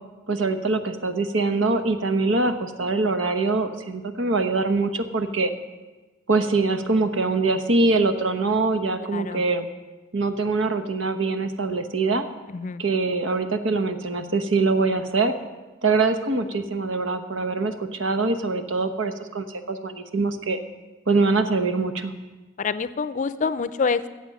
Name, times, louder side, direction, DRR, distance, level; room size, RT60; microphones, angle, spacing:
voice 1, 0.3-5.5 6.3-9.7 10.1-12.3 12.8-15.3 15.8-20.6 21.1-22.1, right 3 dB, 85° right, 7 dB, 1.1 m, -23 dB
voice 2, 9.1-9.4 12.5-12.8 22.6-24.1, left 5 dB, 40° left, 14 dB, 0.5 m, -26 dB
14.0 x 8.1 x 6.4 m, 1.2 s
head